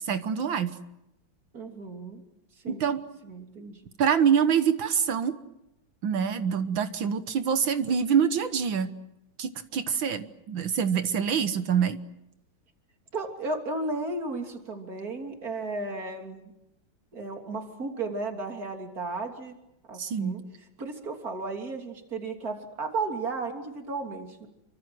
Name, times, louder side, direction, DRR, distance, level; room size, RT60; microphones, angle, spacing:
voice 1, 0.1-0.8 2.7-3.0 4.0-5.4 6.0-8.9 9.4-12.0 20.0-20.3, right 7 dB, 70° right, 10 dB, 1.9 m, -25 dB
voice 2, 1.5-2.2 2.6-2.9 3.2-3.8 13.1-16.5 17.1-19.6 19.9-20.4 20.8-24.5, right 3 dB, 45° right, 4 dB, 3.6 m, -34 dB
28.5 x 24.5 x 7.8 m, 0.85 s
omnidirectional pair, 2.2 m